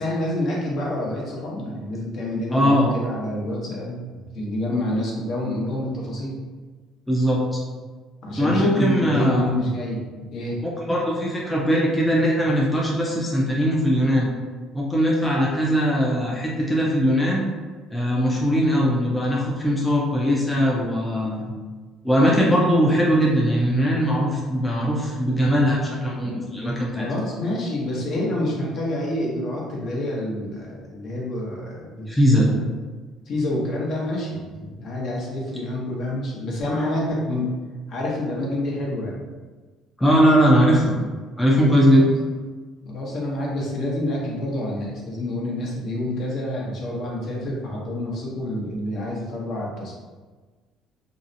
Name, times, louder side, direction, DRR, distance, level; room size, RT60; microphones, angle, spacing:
voice 1, 0.0-6.4 8.2-10.6 27.0-32.1 32.3-32.6 33.3-37.5 37.9-39.2 41.9-42.0 42.8-50.0, left 1 dB, 55° left, -3 dB, 0.7 m, -28 dB
voice 2, 2.5-3.0 7.1-7.6 8.4-9.5 10.6-14.3 14.7-17.4 17.9-21.5 22.0-27.1 32.1-32.5 40.0-41.0 41.4-42.1, equal, 10° left, -4 dB, 0.4 m, -20 dB
2.6 x 2.0 x 2.6 m, 1.4 s
cardioid pair, 110°, 0 cm